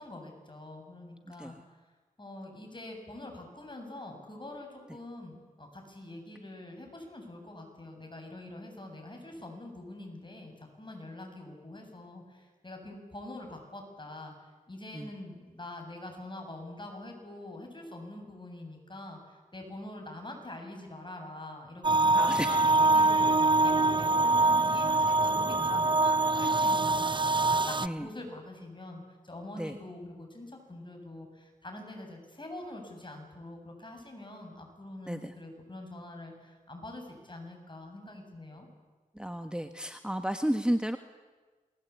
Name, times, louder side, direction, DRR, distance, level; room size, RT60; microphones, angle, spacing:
voice 1, 0.0-1.6 2.2-38.7, left 1 dB, 30° left, 2 dB, 7.7 m, -45 dB
voice 2, 1.3-1.6 14.9-15.1 22.1-22.6 27.8-28.1 29.6-29.7 35.1-35.3 39.1-41.0, equal, 5° right, 7 dB, 1.4 m, -32 dB
sound 1, 21.8-27.9, right 2 dB, 30° right, 0.7 m, -24 dB
27.5 x 20.5 x 8.5 m, 1.3 s
cardioid pair, 50°, 15 cm